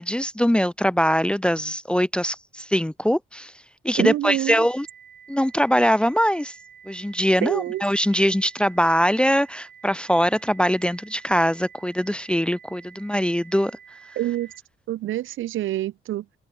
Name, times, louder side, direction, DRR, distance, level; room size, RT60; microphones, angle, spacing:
voice 1, 0.0-3.5 3.8-4.9 5.3-6.5 6.9-13.7, equal, 5° left, 0.7 m, -22 dB
voice 2, 4.0-4.7 7.4-7.8 14.2-14.5 14.9-16.3, right 14 dB, 80° right, 1.7 m, -26 dB
sound 1, 4.6-14.6, right 8 dB, 55° right, 5.2 m, -49 dB
cardioid pair, 90°, 20 cm